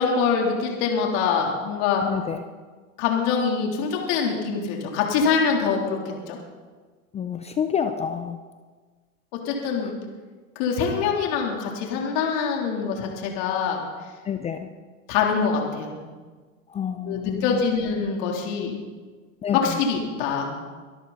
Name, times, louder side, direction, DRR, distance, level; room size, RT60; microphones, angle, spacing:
voice 1, 0.0-2.0 3.0-6.0 6.3-6.4 9.5-9.9 10.6-13.8 15.1-16.0 17.1-18.7 19.5-20.5, left 6 dB, 50° left, 0 dB, 3.6 m, -24 dB
voice 2, 2.0-2.4 7.1-8.4 9.8-9.9 14.3-14.7 16.7-17.6 19.4-19.8, left 8 dB, 15° left, 8 dB, 0.5 m, -28 dB
24.0 x 13.0 x 4.2 m, 1.4 s
hypercardioid pair, 125°, 42 cm